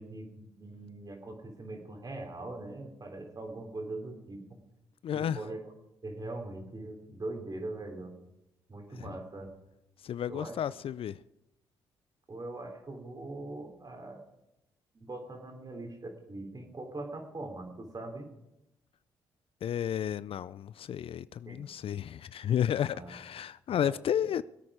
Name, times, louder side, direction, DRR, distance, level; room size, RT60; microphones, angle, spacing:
voice 1, 0.0-4.6 5.1-5.7 6.0-8.1 8.7-9.5 10.3-10.6 12.3-14.2 14.9-18.3 21.4-21.6 22.9-23.2 23.8-24.0, right 2 dB, 35° right, 3.5 m, -41 dB
voice 2, 5.0-5.4 10.0-11.2 19.6-24.4, left 9 dB, 60° left, 0.4 m, -32 dB
21.0 x 8.7 x 5.0 m
supercardioid pair, 50°, 11 cm